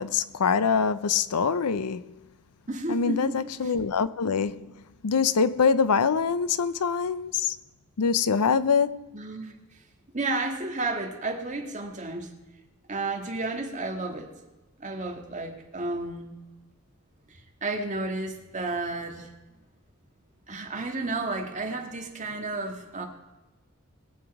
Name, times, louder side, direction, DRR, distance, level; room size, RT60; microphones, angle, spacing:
voice 1, 0.0-2.0 2.9-4.7 5.0-7.5 8.0-9.0, left 5 dB, 85° left, 0.6 m, -24 dB
voice 2, 2.7-3.7 9.1-9.6 10.1-12.3 12.9-14.3 14.8-16.3 17.3-19.3 20.5-23.0, right 2 dB, 35° right, 1.8 m, -32 dB
20.5 x 7.3 x 4.8 m
head